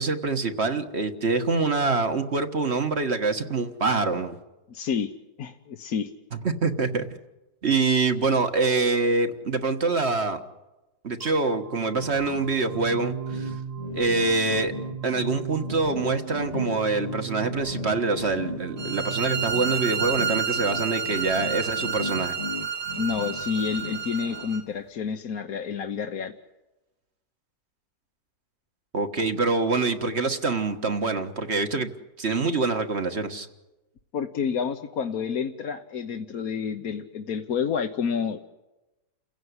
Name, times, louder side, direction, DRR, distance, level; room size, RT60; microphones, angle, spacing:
voice 1, 0.0-4.4 6.3-7.1 7.6-10.4 11.0-13.5 13.9-14.7 15.0-22.4 28.9-31.9 32.2-33.5, right 3 dB, 45° right, 7 dB, 1.7 m, -25 dB
voice 2, 4.7-5.1 5.4-6.1 16.5-16.6 23.0-26.3 34.1-38.4, left 6 dB, 65° left, 5 dB, 1.5 m, -29 dB
sound 1, 11.2-22.1, right 7 dB, 25° right, 1.4 m, -38 dB
sound 2, 11.9-24.5, left 3 dB, 30° left, 0.9 m, -37 dB
sound 3, 18.8-24.6, right 7 dB, 75° right, 2.3 m, -30 dB
29.5 x 16.5 x 9.7 m, 1.1 s
omnidirectional pair, 1.7 m